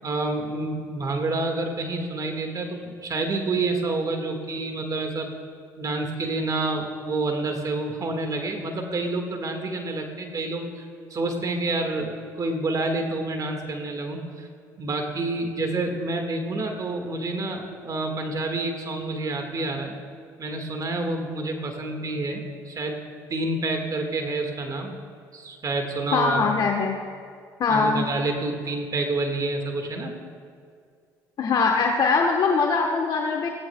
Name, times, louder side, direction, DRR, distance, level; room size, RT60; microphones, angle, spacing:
voice 1, 0.0-5.4 5.8-10.9 11.1-14.5 14.8-19.9 20.4-23.0 23.3-24.9 25.3-26.4 27.7-30.1, right 2 dB, 40° right, 3 dB, 1.8 m, -28 dB
voice 2, 26.1-27.0 27.6-28.0 31.4-33.5, left 4 dB, 50° left, 1 dB, 1.2 m, -22 dB
18.0 x 16.5 x 2.3 m, 2.2 s
hypercardioid pair, 65°, 9 cm